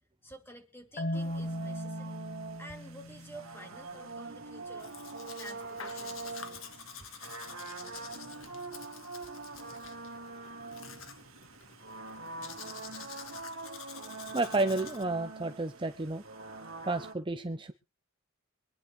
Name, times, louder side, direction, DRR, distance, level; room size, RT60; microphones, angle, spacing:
voice 1, 0.2-2.2 2.6-6.9, right 1 dB, 10° left, 4 dB, 2.7 m, -51 dB
Marimba xylophone, 1.0-3.9, left 1 dB, 45° left, 2.0 m, -38 dB
sound 1, 1.1-17.1, right 3 dB, 75° right, 2.2 m, -44 dB
Domestic sounds home sounds, 4.8-15.0, left 7 dB, 70° left, 1.7 m, -48 dB
voice 2, 14.3-16.2 16.8-17.7, right 2 dB, 25° right, 8 dB, 0.7 m, -31 dB
24.5 x 9.8 x 3.2 m, 0.31 s
head